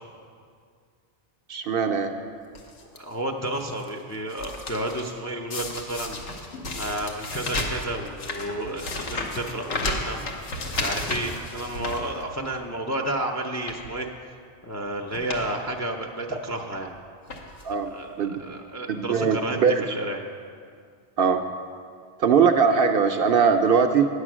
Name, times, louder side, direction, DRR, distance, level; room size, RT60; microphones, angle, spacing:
voice 1, 1.5-2.1 17.6-17.9 18.2-18.4 18.9-19.8 21.2-21.4 22.2-24.1, right 6 dB, 60° right, 6 dB, 0.7 m, -21 dB
sound 1, 2.5-3.0 3.5-3.9 4.1-5.1 5.5-12.6 13.0-13.1 13.5-13.9 14.7-14.8 15.1-15.5 15.8-15.9 16.8-16.9 17.3-17.8 18.5-18.6 18.8-18.9, left 2 dB, 80° left, 1.4 m, -33 dB
voice 2, 3.0-6.5 6.8-10.2 10.7-14.1 14.6-16.9 17.9-20.2, right 1 dB, 25° left, 2 dB, 0.4 m, -31 dB
9.2 x 8.1 x 6.1 m, 2.2 s
omnidirectional pair, 1.2 m